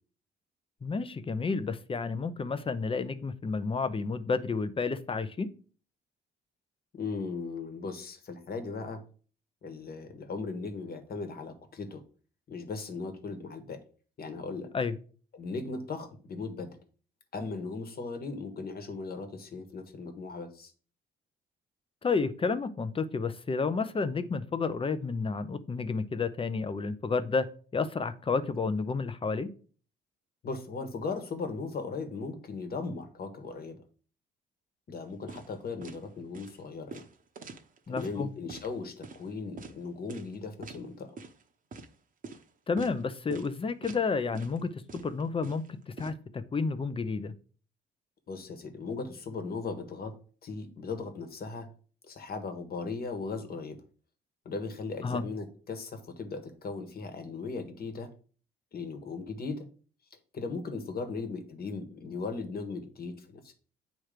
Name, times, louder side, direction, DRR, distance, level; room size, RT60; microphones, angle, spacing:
voice 1, 0.8-5.5 14.7-15.0 22.0-27.5 27.7-29.5 37.9-38.3 42.7-47.3 55.0-55.2, left 4 dB, 25° left, 12 dB, 0.7 m, -31 dB
voice 2, 6.9-9.1 9.6-12.0 12.5-13.8 14.2-14.7 15.3-16.8 17.3-20.7 30.4-33.8 34.9-37.0 37.9-41.1 48.3-50.2 50.4-51.7 52.1-53.8 54.4-58.1 58.7-59.7 60.3-63.5, left 4 dB, 50° left, 7 dB, 1.4 m, -38 dB
sound 1, 35.3-35.5 35.8-36.0 36.3-36.5 36.9-38.1 38.5-38.7 39.0-39.2 39.6-39.7 40.1-40.3 40.6-40.8 41.2-41.4 41.7-41.9 42.2-42.4 42.8-43.0 43.3-43.5 43.8-44.1 44.3-44.6 44.9-46.1, right 4 dB, 45° right, 0.9 m, -44 dB
8.8 x 3.1 x 5.0 m, 0.41 s
cardioid pair, 90°, 20 cm